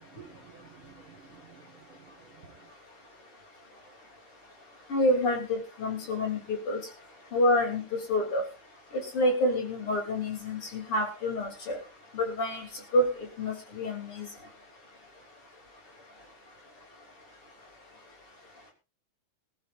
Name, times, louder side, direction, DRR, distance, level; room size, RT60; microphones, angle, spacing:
voice 1, 0.0-2.6, right 6 dB, 45° right, 1.8 m, -54 dB
voice 2, 4.9-6.8 7.3-7.8 8.1-8.5 9.1-11.8 12.1-12.7 12.9-13.1 13.4-14.3, left 1 dB, 40° left, 3.9 m, -27 dB
20.5 x 13.5 x 2.6 m
omnidirectional pair, 4.3 m